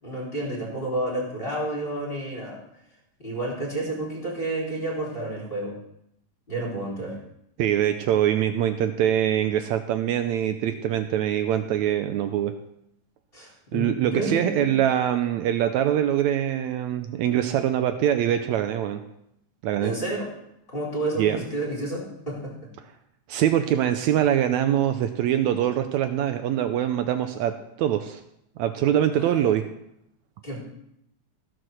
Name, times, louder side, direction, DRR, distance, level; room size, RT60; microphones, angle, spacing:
voice 1, 0.0-2.6 3.2-5.8 6.5-7.2 13.3-14.7 19.8-20.3 20.7-22.5 29.1-29.5 30.4-30.6, right 1 dB, 15° left, -3 dB, 3.3 m, -30 dB
voice 2, 7.6-12.5 13.7-19.0 19.6-19.9 21.2-21.4 23.3-28.2 28.6-29.6, right 11 dB, 80° right, 8 dB, 1.7 m, -23 dB
15.0 x 6.1 x 6.3 m, 0.77 s
omnidirectional pair, 3.8 m